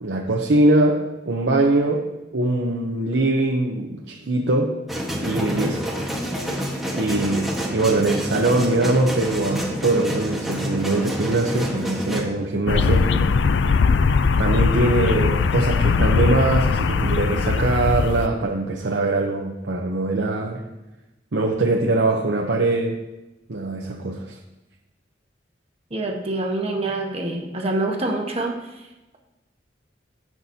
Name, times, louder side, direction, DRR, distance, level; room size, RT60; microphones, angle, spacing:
voice 1, 0.0-4.8 5.2-5.9 6.9-13.4 14.4-20.6 21.3-23.0 23.5-24.4, right 2 dB, 80° right, 0 dB, 0.8 m, -22 dB
sound 1, 4.9-12.2, equal, ahead, 1.4 m, -28 dB
sound 2, 12.7-18.3, left 5 dB, 80° left, 0.4 m, -20 dB
voice 2, 25.9-28.8, right 2 dB, 35° right, 1 dB, 1.3 m, -26 dB
16.5 x 6.0 x 2.8 m, 1.0 s
head